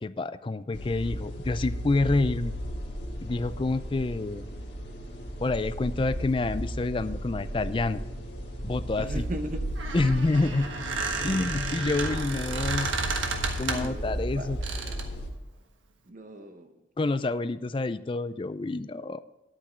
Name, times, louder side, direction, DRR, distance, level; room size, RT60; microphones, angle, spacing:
voice 1, 0.0-2.5 3.2-4.4 5.4-8.0 8.6-9.3 9.9-10.7 11.2-12.9 13.6-14.6 17.0-19.2, left 2 dB, 25° left, 13 dB, 0.4 m, -28 dB
sound 1, 0.7-15.3, equal, 60° left, 1.9 m, -35 dB
voice 2, 9.0-9.7 13.7-14.9 16.0-16.7 17.0-17.2, right 1 dB, 40° right, 7 dB, 0.9 m, -38 dB
Squeak, 9.6-14.0 14.6-15.1, right 3 dB, 85° right, 1.4 m, -32 dB
10.5 x 8.8 x 4.4 m, 1.1 s
head